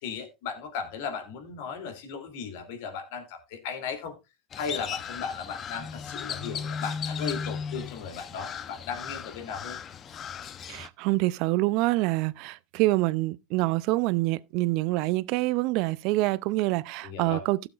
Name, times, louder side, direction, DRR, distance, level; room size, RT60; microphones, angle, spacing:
voice 1, 0.0-4.1 4.6-9.8 17.0-17.4, left 6 dB, 65° left, 2.9 m, -36 dB
Crow, 4.5-10.9, left 6 dB, 35° left, 0.8 m, -36 dB
voice 2, 10.7-17.7, right 19 dB, 60° right, 0.5 m, -26 dB
16.0 x 7.0 x 2.5 m
hypercardioid pair, 95°, 0 cm